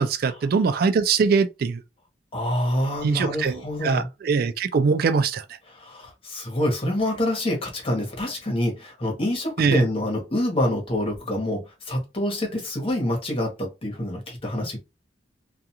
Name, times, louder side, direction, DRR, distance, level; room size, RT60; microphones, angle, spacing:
voice 1, 0.0-1.8 3.0-5.4 9.6-9.9, right 5 dB, 55° right, 0.3 m, -22 dB
voice 2, 2.3-4.1 5.7-14.8, left 1 dB, 30° left, 1.1 m, -26 dB
2.4 x 2.4 x 2.8 m
head